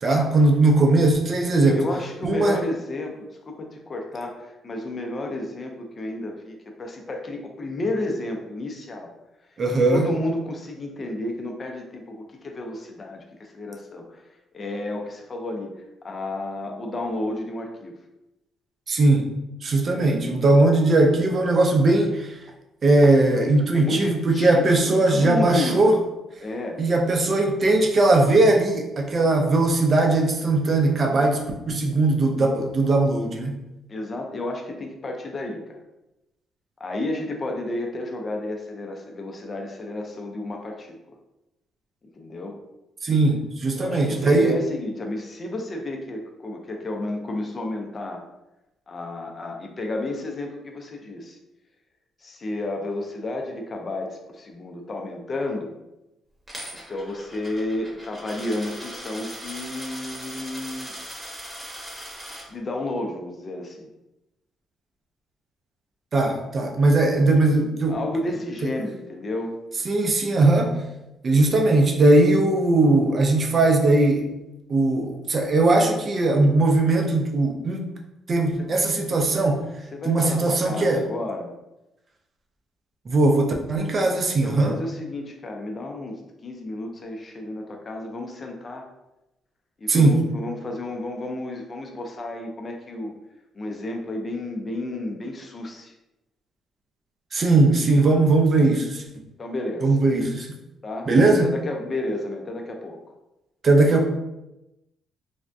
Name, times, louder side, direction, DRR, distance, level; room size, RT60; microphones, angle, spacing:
voice 1, 0.0-1.8 2.2-2.6 9.6-10.1 18.9-19.3 19.6-22.4 22.8-25.9 26.8-33.6 43.0-44.6 66.1-68.0 68.6-68.7 69.9-70.8 71.2-74.3 74.7-77.8 78.3-79.6 80.1-81.0 83.1-84.8 89.9-90.2 97.3-99.0 99.8-100.5 101.1-101.5 103.6-104.0, right 2 dB, 40° right, 2 dB, 0.5 m, -19 dB
voice 2, 1.7-9.1 9.9-14.2 14.5-18.0 23.7-24.7 25.1-26.0 26.4-26.8 33.9-35.8 36.8-41.0 42.2-42.6 43.8-48.2 48.9-51.4 52.2-55.7 56.9-60.9 62.5-63.9 67.9-69.5 76.9-77.0 78.6-78.8 79.9-81.5 84.4-88.9 89.8-93.1 93.5-95.9 99.4-99.9 100.8-101.1 101.4-103.0, left 2 dB, 35° left, 2 dB, 0.5 m, -31 dB
Coin (dropping), 56.5-62.4, equal, 15° right, 1.0 m, -39 dB
3.3 x 2.2 x 2.5 m, 0.94 s
cardioid pair, 90°, 0 cm